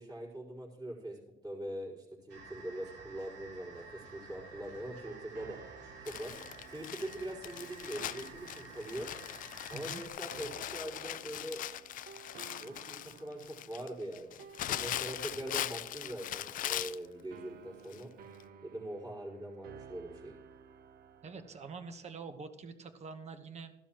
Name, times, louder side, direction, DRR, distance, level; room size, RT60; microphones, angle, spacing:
voice 1, 0.0-5.6 6.0-6.3 6.7-9.1 9.7-11.6 12.6-18.1 18.6-20.3, right 1 dB, 25° right, -4 dB, 4.8 m, -42 dB
sound 1, 2.3-10.1, right 4 dB, 85° right, 3.4 m, -52 dB
sound 2, 4.1-22.0, right 7 dB, 60° right, 0.9 m, -55 dB
Crumpling crinkling, 6.1-17.1 17.9-18.0 18.4-18.5, left 12 dB, 55° left, 0.4 m, -40 dB
voice 2, 21.2-23.7, right 4 dB, 40° right, 9 dB, 1.2 m, -45 dB
15.0 x 12.0 x 3.0 m, 0.98 s
cardioid pair, 110°, 17 cm